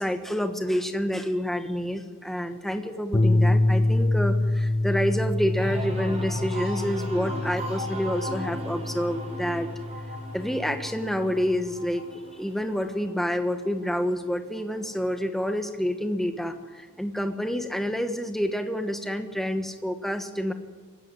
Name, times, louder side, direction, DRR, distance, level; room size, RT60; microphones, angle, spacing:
voice 1, 0.0-9.7 10.3-20.5, equal, ahead, 6 dB, 1.2 m, -28 dB
sound 1, 3.1-11.5, left 2 dB, 25° left, 0.8 m, -26 dB
sound 2, 5.5-15.1 15.5-16.0, equal, 30° right, 5.7 m, -38 dB
21.5 x 16.0 x 9.7 m, 1.3 s
head